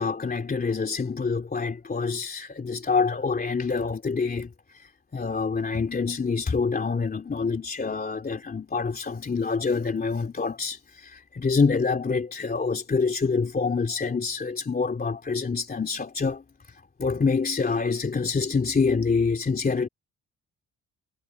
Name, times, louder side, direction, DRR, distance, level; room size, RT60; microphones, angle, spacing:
voice 1, 0.0-19.9, left 4 dB, 30° left, 3.0 m, -26 dB
cardioid pair, 90°, 30 cm